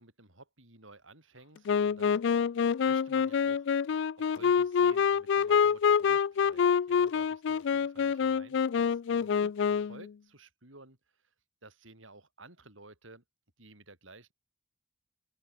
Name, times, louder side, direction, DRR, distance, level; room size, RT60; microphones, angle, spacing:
voice 1, 0.0-2.2 2.8-3.7 4.2-11.0 11.6-13.2 13.6-14.3, right 2 dB, 75° right, 7.5 m, -54 dB
Wind instrument woodwind instrument, 1.7-10.1, left 6 dB, 65° left, 0.4 m, -26 dB
open air
head